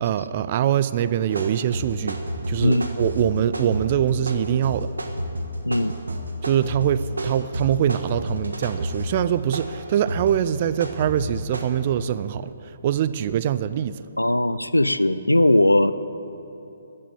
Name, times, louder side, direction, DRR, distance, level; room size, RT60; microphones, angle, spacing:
voice 1, 0.0-2.2 2.5-4.9 6.4-14.0, right 10 dB, 35° right, 15 dB, 0.5 m, -23 dB
sound 1, 1.3-11.7, right 1 dB, 70° right, 1.4 m, -30 dB
voice 2, 14.2-15.9, left 1 dB, 90° left, 14 dB, 0.5 m, -19 dB
14.0 x 8.7 x 8.4 m, 3.0 s
figure-of-eight pair, 135°, 0 cm